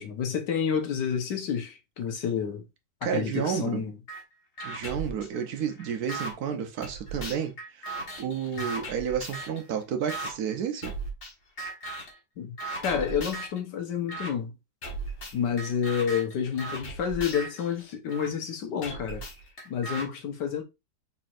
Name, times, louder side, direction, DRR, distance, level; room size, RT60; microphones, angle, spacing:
voice 1, 0.0-2.7 3.1-3.9 12.4-12.6 12.8-14.5 15.3-19.2 19.7-20.6, left 7 dB, 85° left, 1.6 m, -29 dB
voice 2, 3.0-3.9 4.6-10.9, right 8 dB, 65° right, 1.2 m, -31 dB
sound 1, 4.1-4.2 4.6-6.3 6.8-9.6 10.1-10.3 10.8-11.3 11.6-12.2 12.6-13.6 14.1-14.3 14.8-18.3 18.8-20.1, right 2 dB, 45° left, 1.5 m, -37 dB
4.4 x 4.2 x 2.5 m
omnidirectional pair, 1.8 m